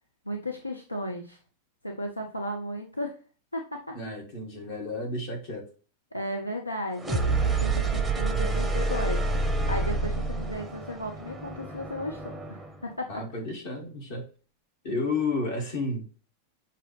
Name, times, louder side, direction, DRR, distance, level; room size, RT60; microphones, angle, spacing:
voice 1, 0.3-1.4 1.8-3.1 3.5-4.0 6.1-13.1, equal, 85° left, 0.5 m, -35 dB
voice 2, 3.9-5.7 13.1-14.3 14.8-16.0, left 3 dB, 50° left, 1.7 m, -31 dB
sound 1, 7.0-12.8, right 3 dB, 10° right, 0.7 m, -28 dB
6.1 x 2.8 x 3.1 m
figure-of-eight pair, 90°, 0 cm